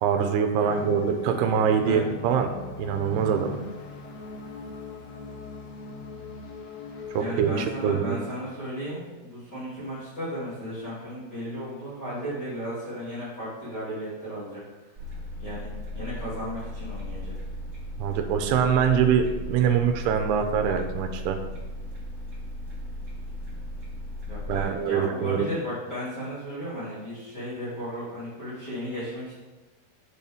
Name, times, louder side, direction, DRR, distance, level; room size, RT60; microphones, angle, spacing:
voice 1, 0.0-2.5 2.8-3.6 7.1-8.2 18.0-21.4 24.5-25.5, right 7 dB, 85° right, 6 dB, 2.7 m, -24 dB
sound 1, 0.7-7.2, left 3 dB, 70° left, 1.6 m, -39 dB
voice 2, 1.7-2.0 7.2-14.6 15.4-17.3 24.3-29.3, equal, 30° left, -13 dB, 3.0 m, -35 dB
sound 2, 15.0-24.6, left 1 dB, 35° right, 1.1 m, -36 dB
8.2 x 6.9 x 3.6 m, 1.2 s
omnidirectional pair, 4.6 m